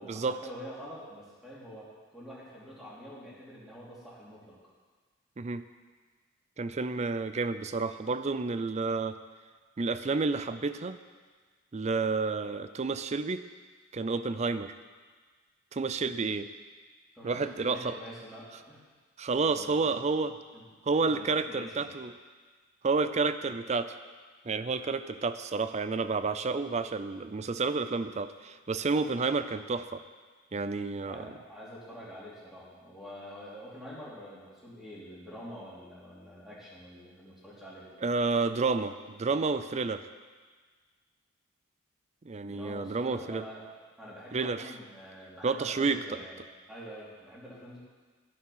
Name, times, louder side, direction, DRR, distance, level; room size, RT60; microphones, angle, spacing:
voice 1, 0.0-4.6 17.1-18.8 19.4-20.0 20.5-20.6 21.1-21.9 31.0-37.9 42.4-43.7 44.0-46.4 46.7-47.8, equal, ahead, -7 dB, 3.1 m, -46 dB
voice 2, 6.6-9.2 9.8-11.0 11.7-13.4 13.9-14.7 15.7-16.5 17.2-17.9 19.2-20.4 20.9-22.1 22.8-24.0 24.5-30.0 30.5-31.3 38.0-40.1 42.3-43.4 44.3-44.6 45.4-46.2, right 4 dB, 35° right, 12 dB, 0.4 m, -30 dB
11.5 x 9.5 x 5.7 m, 1.5 s
head